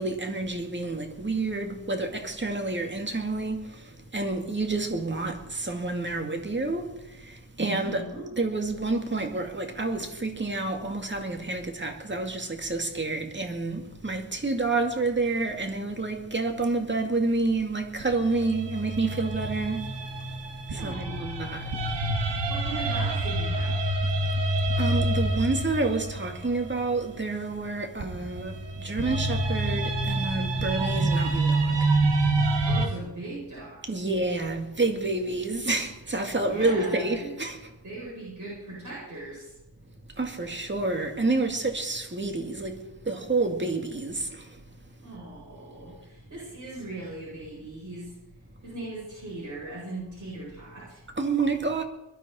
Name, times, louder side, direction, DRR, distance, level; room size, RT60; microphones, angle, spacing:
voice 1, 0.0-8.0 8.4-20.3 20.7-21.7 24.8-32.0 33.9-37.7 40.2-44.6 51.2-51.8, right 3 dB, 25° right, 2.2 m, -29 dB
voice 2, 7.6-8.3 20.7-21.6 22.0-23.8 32.7-34.0 36.3-37.3 37.8-39.5 45.0-48.1 48.6-51.0, right 2 dB, 40° right, 7.8 m, -39 dB
sound 1, 18.0-27.1 28.0-32.9, right 2 dB, 60° right, 2.1 m, -27 dB
21.5 x 13.0 x 4.4 m
wide cardioid pair, 135°, 47 cm